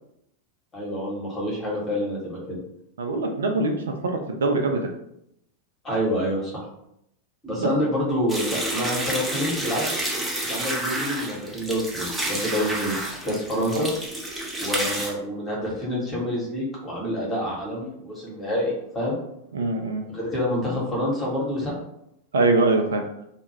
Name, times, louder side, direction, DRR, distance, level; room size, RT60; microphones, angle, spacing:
voice 1, 0.7-2.6 5.8-6.7 7.4-9.9 10.5-13.9 14.6-19.2 20.1-21.8, equal, 20° left, -4 dB, 1.0 m, -27 dB
voice 2, 3.0-4.8 7.6-7.7 13.7-13.8 19.5-20.0 22.3-23.0, right 3 dB, 65° right, 3 dB, 0.3 m, -23 dB
sound 1, 8.3-15.1, right 1 dB, 5° right, 0.6 m, -29 dB
2.1 x 2.1 x 3.1 m, 0.77 s
figure-of-eight pair, 90°, 0 cm